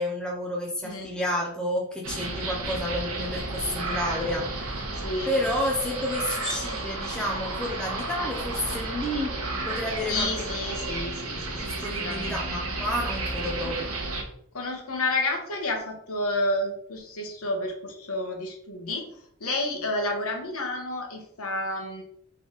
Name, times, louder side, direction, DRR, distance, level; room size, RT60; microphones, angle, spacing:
voice 1, 0.0-4.5 5.2-10.5 11.6-13.9, left 1 dB, 5° left, -2 dB, 0.5 m, -30 dB
sound 1, 2.0-14.2, right 2 dB, 70° right, 1.0 m, -32 dB
voice 2, 5.0-5.3 10.1-12.4 14.5-19.1 19.4-22.0, left 2 dB, 75° left, 2 dB, 1.1 m, -30 dB
3.5 x 3.3 x 3.9 m, 0.67 s
head